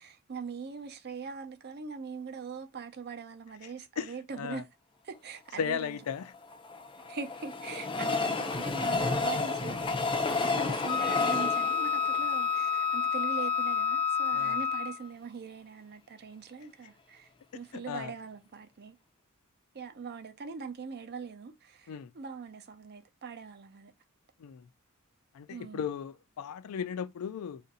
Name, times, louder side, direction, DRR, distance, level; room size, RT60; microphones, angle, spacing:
voice 1, 0.0-4.7 5.0-6.0 7.1-17.3 17.5-19.0 19.7-23.9 25.5-25.8, right 5 dB, 50° right, 0.5 m, -42 dB
voice 2, 4.0-4.6 5.6-6.3 14.3-14.6 17.7-18.1 21.9-22.1 24.4-24.6 25.3-27.6, left 7 dB, 85° left, 0.4 m, -36 dB
Train, 6.2-13.5 14.0-14.1 14.3-14.4, left 3 dB, 25° left, 0.5 m, -32 dB
Wind instrument woodwind instrument, 10.9-15.1, left 7 dB, 25° right, 0.9 m, -29 dB
2.5 x 2.5 x 3.9 m
head